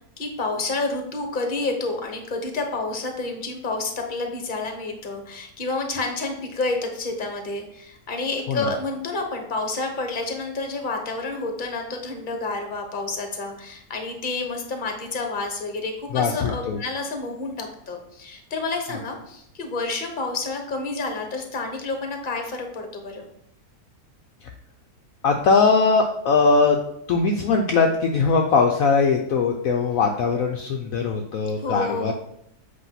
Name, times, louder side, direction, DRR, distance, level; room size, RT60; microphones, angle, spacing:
voice 1, 0.2-23.2 31.6-32.1, left 3 dB, 35° left, 4 dB, 1.2 m, -29 dB
voice 2, 16.1-16.8 24.4-24.5 25.2-26.8 27.1-32.1, left 4 dB, 65° left, 2 dB, 1.0 m, -20 dB
8.1 x 3.0 x 5.7 m, 0.74 s
omnidirectional pair, 1.7 m